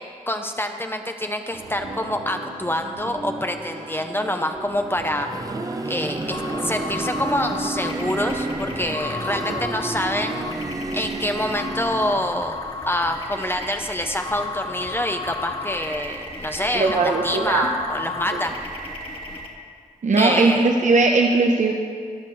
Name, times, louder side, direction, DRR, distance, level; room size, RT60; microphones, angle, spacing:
voice 1, 0.3-5.3 5.9-10.5 10.9-12.6 12.9-18.5 20.2-20.7, left 1 dB, 15° left, 5 dB, 0.7 m, -26 dB
sound 1, 1.5-9.8, right 2 dB, 90° right, 1.7 m, -37 dB
sound 2, 4.9-12.7, right 2 dB, 25° right, 0.7 m, -31 dB
sound 3, 6.3-19.5, left 3 dB, 40° left, 1.7 m, -33 dB
voice 2, 16.7-17.7 20.0-21.7, right 3 dB, 60° right, 1 dB, 0.9 m, -19 dB
16.5 x 6.0 x 4.6 m, 2.2 s
cardioid pair, 55°, 14 cm